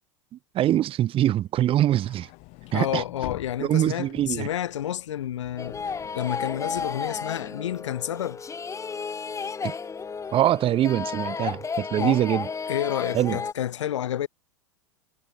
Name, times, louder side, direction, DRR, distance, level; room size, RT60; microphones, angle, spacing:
voice 1, 0.3-2.3 2.7-3.0 3.6-4.5 9.6-9.7 10.3-12.5 13.1-13.4, right 12 dB, 35° right, 1.5 m, -23 dB
sound 1, 1.8-8.1, left 26 dB, 50° left, 2.1 m, -46 dB
voice 2, 2.7-8.4 12.0-12.2 12.7-14.3, left 11 dB, 75° left, 1.0 m, -30 dB
sound 2, 5.6-13.5, left 5 dB, 20° left, 3.8 m, -33 dB
hypercardioid pair, 90°, 16 cm